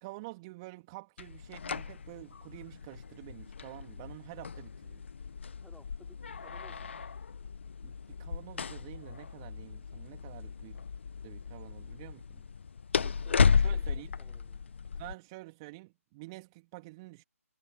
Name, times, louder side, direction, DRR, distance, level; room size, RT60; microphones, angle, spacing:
voice 1, 0.0-5.0 7.8-10.8 11.2-12.4 13.6-14.1 15.0-17.2, right 23 dB, 20° right, 2.6 m, -48 dB
sound 1, 1.2-15.1, left 6 dB, 50° left, 1.2 m, -34 dB
voice 2, 5.6-6.9 13.0-13.9 14.2-14.6, left 1 dB, ahead, 4.9 m, -58 dB
figure-of-eight pair, 145°, 8 cm